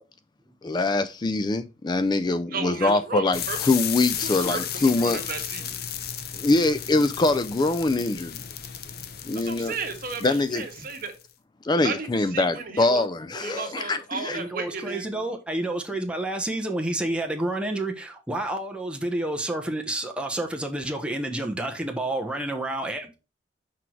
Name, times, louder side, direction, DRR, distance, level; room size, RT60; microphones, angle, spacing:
voice 1, 0.6-5.3 6.3-8.4 9.3-9.8 10.2-10.6 11.6-14.4, left 2 dB, 25° left, 0.4 m, -24 dB
voice 2, 2.5-3.6 4.2-5.8 9.3-11.1 11.8-13.0 13.3-15.1, right 4 dB, 55° right, 1.5 m, -34 dB
White Noise Intro, 3.3-11.2, left 9 dB, 60° left, 0.8 m, -34 dB
voice 3, 14.3-23.2, right 1 dB, 5° right, 1.0 m, -29 dB
6.1 x 4.6 x 4.6 m
head